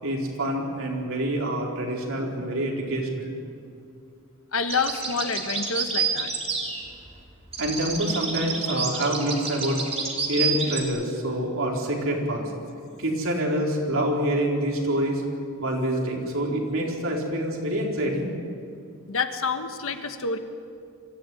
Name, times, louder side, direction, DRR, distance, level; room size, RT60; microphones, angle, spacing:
voice 1, 0.0-3.3 7.6-9.8 10.3-12.5 13.0-15.2 15.6-18.3, right 1 dB, 65° right, -1 dB, 4.4 m, -26 dB
voice 2, 4.5-6.3 19.1-20.4, left 4 dB, 65° left, 7 dB, 1.5 m, -28 dB
sound 1, 4.7-7.2 7.5-10.8, right 5 dB, 30° right, 3.1 m, -29 dB
25.0 x 14.5 x 9.4 m, 2.4 s
head